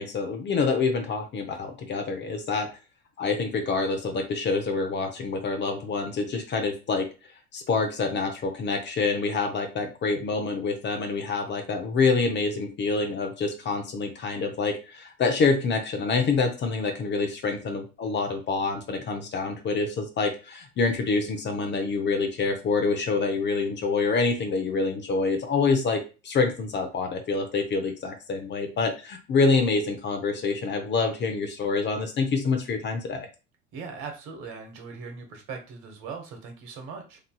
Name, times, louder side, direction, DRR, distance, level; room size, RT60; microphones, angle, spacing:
voice 1, 0.0-2.7 3.2-7.1 7.5-33.3, left 4 dB, 30° left, 6 dB, 0.7 m, -26 dB
voice 2, 33.7-37.2, right 5 dB, 50° right, 3 dB, 1.2 m, -39 dB
3.0 x 2.6 x 2.2 m, 0.32 s
hypercardioid pair, 75°, 38 cm